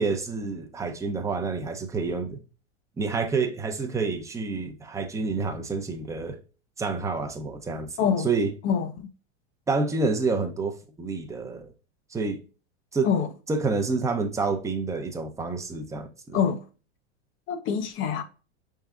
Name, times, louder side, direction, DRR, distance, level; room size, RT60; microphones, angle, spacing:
voice 1, 0.0-2.4 3.0-6.4 6.8-8.5 9.7-11.7 12.1-12.4 12.9-13.1 13.5-16.4, right 4 dB, 10° right, 0.7 m, -28 dB
voice 2, 8.0-8.3 8.6-9.1 13.0-13.3 16.3-16.6 17.5-18.2, left 7 dB, 35° left, 0.6 m, -25 dB
5.4 x 3.7 x 2.4 m
hypercardioid pair, 115°, 33 cm